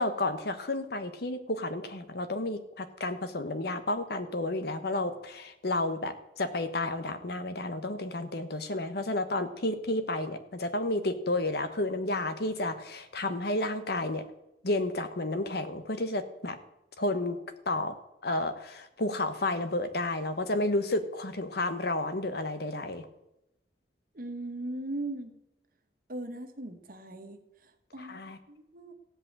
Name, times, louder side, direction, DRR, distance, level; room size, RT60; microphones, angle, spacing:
voice 1, 0.0-14.2 14.6-16.6 17.0-17.4 17.7-17.9 18.2-23.1 28.0-28.4, left 2 dB, 60° left, 9 dB, 1.2 m, -31 dB
voice 2, 24.1-25.3 26.1-28.9, right 2 dB, 50° right, 6 dB, 1.5 m, -39 dB
16.0 x 5.4 x 8.8 m, 0.88 s
head